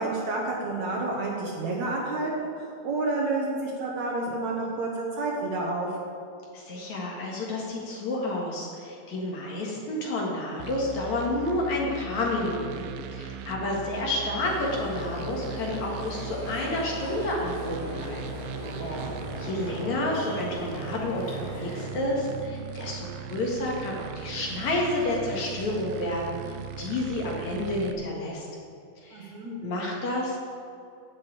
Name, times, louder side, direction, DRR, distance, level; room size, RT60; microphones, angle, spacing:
voice 1, 0.0-6.0 18.8-19.1 29.1-29.6, right 2 dB, 60° right, -2 dB, 2.2 m, -30 dB
voice 2, 6.5-18.2 18.8-19.0 19.4-28.5 29.0-29.3 29.6-30.4, left 1 dB, 55° left, -3 dB, 2.7 m, -30 dB
sound 1, 10.6-27.9, right 7 dB, 90° right, 2.6 m, -39 dB
sound 2, 14.4-21.9, left 1 dB, 35° left, 3.8 m, -39 dB
11.5 x 6.7 x 8.5 m, 2.6 s
omnidirectional pair, 4.3 m